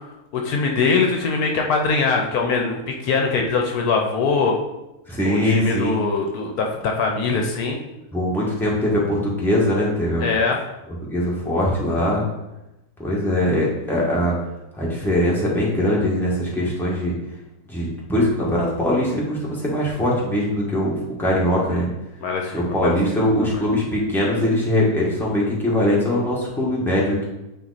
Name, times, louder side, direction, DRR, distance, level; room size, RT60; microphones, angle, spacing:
voice 1, 0.0-4.6 5.2-7.8 10.2-10.6 21.7-21.8 22.2-23.0 23.4-23.6, left 4 dB, 70° left, 2 dB, 1.2 m, -22 dB
voice 2, 5.1-6.0 8.1-10.2 11.0-12.2 13.0-14.3 14.8-17.1 17.7-21.9 22.5-27.3, left 1 dB, ahead, -5 dB, 1.4 m, -21 dB
8.9 x 3.0 x 4.0 m, 0.95 s
omnidirectional pair, 1.7 m